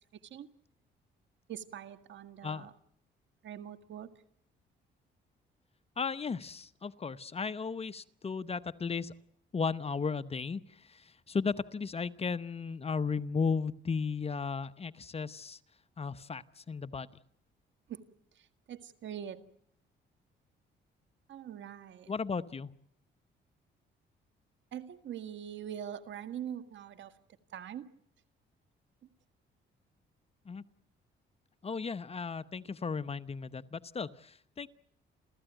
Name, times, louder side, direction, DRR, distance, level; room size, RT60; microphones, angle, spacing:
voice 1, 1.5-2.7 3.4-4.1 17.9-18.0 18.3-19.4 21.3-22.1 24.7-27.1 27.5-27.8, right 9 dB, 70° right, 10 dB, 1.8 m, -43 dB
voice 2, 6.0-9.1 9.5-15.6 16.0-17.1 22.1-22.7 30.5-30.6 31.6-34.7, left 5 dB, 30° left, 13 dB, 0.9 m, -35 dB
30.0 x 14.0 x 9.1 m, 0.70 s
cardioid pair, 90°, 20 cm